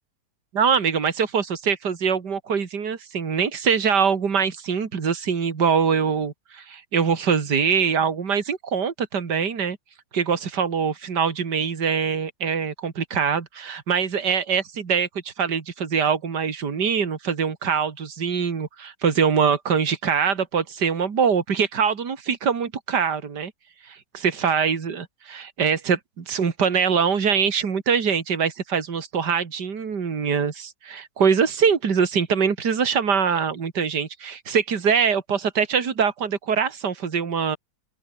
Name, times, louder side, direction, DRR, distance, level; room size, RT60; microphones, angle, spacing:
voice 1, 0.5-9.8 10.1-23.5 23.8-37.6, right 6 dB, 70° right, 2.8 m, -23 dB
open air
omnidirectional pair, 1.9 m